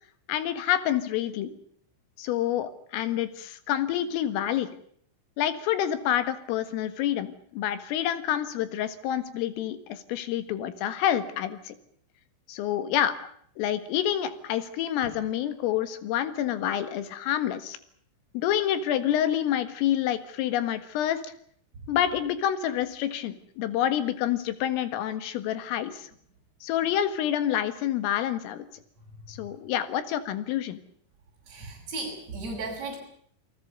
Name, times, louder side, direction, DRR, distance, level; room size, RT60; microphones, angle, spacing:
voice 1, 0.3-1.6 2.2-4.7 5.4-11.8 12.5-13.2 13.6-17.8 18.3-21.3 21.9-26.1 26.6-28.7 29.3-30.8, left 11 dB, 85° left, 12 dB, 4.3 m, -28 dB
voice 2, 31.5-33.0, right 3 dB, 35° right, -2 dB, 6.9 m, -35 dB
29.0 x 20.0 x 6.8 m, 0.64 s
omnidirectional pair, 5.8 m